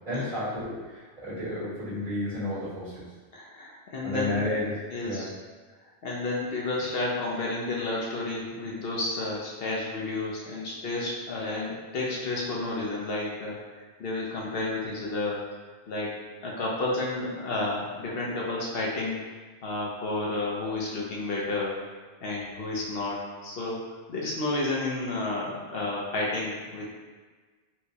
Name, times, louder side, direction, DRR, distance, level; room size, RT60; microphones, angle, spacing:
voice 1, 0.0-3.0 4.0-5.3, left 1 dB, 50° right, -11 dB, 1.5 m, -32 dB
voice 2, 3.3-4.3 4.9-5.3 6.0-15.4 15.9-16.1 16.4-19.3 19.6-21.7 22.2-23.8 24.1-26.9, left 2 dB, 65° left, -4 dB, 0.8 m, -31 dB
4.4 x 2.1 x 2.8 m, 1.4 s
omnidirectional pair, 1.1 m